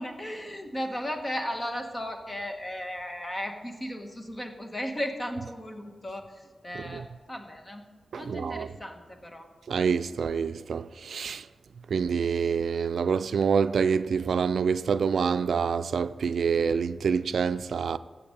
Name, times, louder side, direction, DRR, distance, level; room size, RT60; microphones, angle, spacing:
voice 1, 0.0-9.5, equal, 20° left, 1.3 m, -35 dB
voice 2, 8.1-8.7 9.7-11.4 11.9-18.0, right 6 dB, 85° right, 0.3 m, -26 dB
15.0 x 7.7 x 5.3 m
wide cardioid pair, 110°, 0 cm